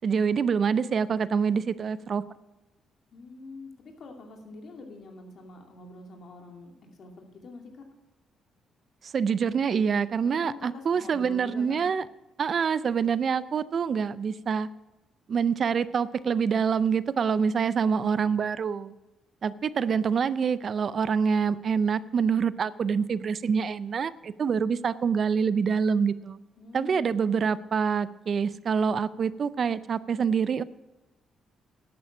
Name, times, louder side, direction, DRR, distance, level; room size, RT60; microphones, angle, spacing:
voice 1, 0.0-2.2 9.0-12.0 12.4-14.7 15.3-18.9 19.4-26.4 26.7-30.6, right 6 dB, 50° right, 17 dB, 0.4 m, -26 dB
voice 2, 3.1-7.9 10.2-11.9 26.6-27.3, left 3 dB, 60° left, 3 dB, 2.5 m, -45 dB
11.0 x 8.6 x 6.0 m, 1.1 s
cardioid pair, 90°, 0 cm